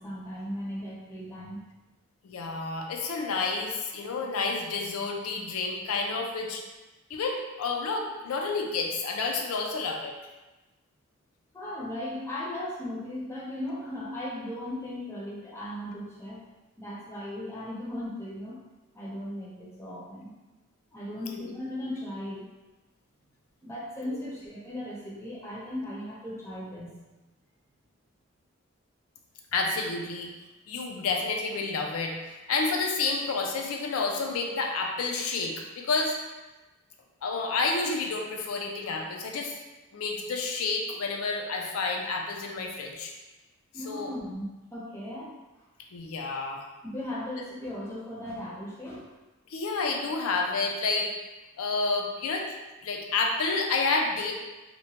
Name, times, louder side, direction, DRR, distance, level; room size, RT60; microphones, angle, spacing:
voice 1, 0.0-1.6 11.5-16.4 16.8-18.6 18.9-20.3 20.9-22.4 23.6-26.9 43.7-45.3 46.8-49.0, left 1 dB, 10° left, -7 dB, 0.5 m, -37 dB
voice 2, 2.2-6.6 7.1-10.1 21.2-21.4 24.1-24.2 29.5-30.3 30.7-36.2 37.2-39.6 39.9-43.1 43.7-44.1 45.9-46.7 49.5-51.1 51.6-52.5 52.8-54.3, left 3 dB, 90° left, 2 dB, 0.4 m, -30 dB
2.9 x 2.1 x 2.7 m, 1.1 s
head